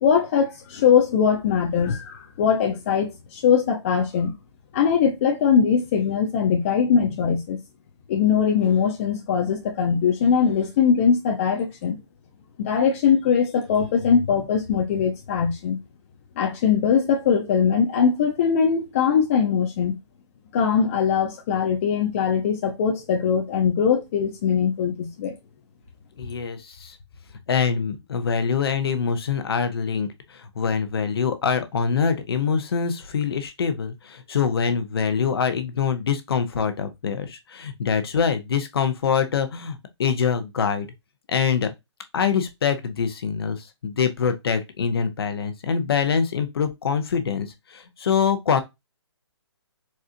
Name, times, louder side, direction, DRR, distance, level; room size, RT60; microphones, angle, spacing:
voice 1, 0.0-4.3 4.7-7.6 8.1-12.0 12.6-15.8 16.4-19.9 20.5-25.3, left 7 dB, 30° left, 0.5 m, -21 dB
voice 2, 26.2-27.0 27.5-40.9 41.3-41.7 42.1-48.6, left 6 dB, 55° left, 0.8 m, -24 dB
4.2 x 2.4 x 2.4 m
hypercardioid pair, 150°, 15 cm